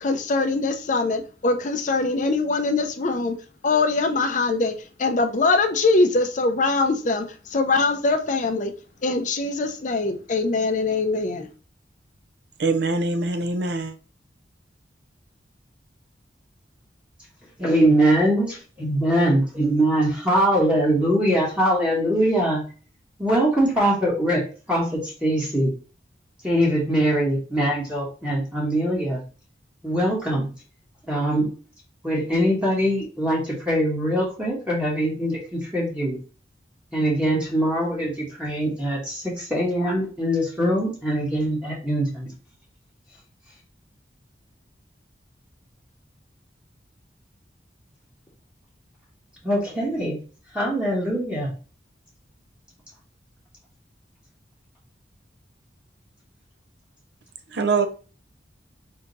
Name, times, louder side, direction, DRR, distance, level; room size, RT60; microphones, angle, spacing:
voice 1, 0.0-3.3 3.6-7.3 7.5-8.7 9.0-11.5, left 3 dB, 45° left, 0.5 m, -22 dB
voice 2, 12.6-13.9 57.5-57.9, right 3 dB, 70° right, 0.6 m, -23 dB
voice 3, 17.6-22.6 23.2-25.7 26.4-29.2 29.8-30.5 31.1-31.5 32.0-36.2 36.9-42.3 49.4-50.2 50.5-51.5, right 1 dB, 5° right, 1.1 m, -22 dB
3.6 x 2.8 x 3.9 m
head